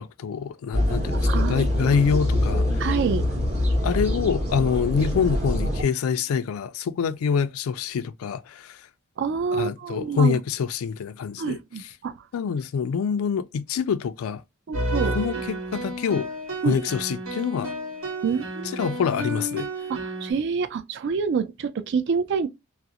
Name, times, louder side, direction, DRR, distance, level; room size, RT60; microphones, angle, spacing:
voice 1, 0.0-2.8 3.8-8.9 9.5-11.6 12.3-14.4 15.1-16.3 16.6-17.7 18.7-19.7, left 6 dB, 80° left, 0.3 m, -26 dB
sound 1, 0.7-5.8, left 1 dB, 30° right, 0.9 m, -24 dB
voice 2, 1.3-2.0 2.8-3.3 9.2-10.4 11.4-12.2 14.7-15.2 16.6-16.8 18.2-18.8 19.9-22.5, right 6 dB, 55° right, 0.3 m, -27 dB
sound 2, 14.7-20.3, right 1 dB, 75° right, 1.0 m, -31 dB
2.4 x 2.0 x 2.7 m
head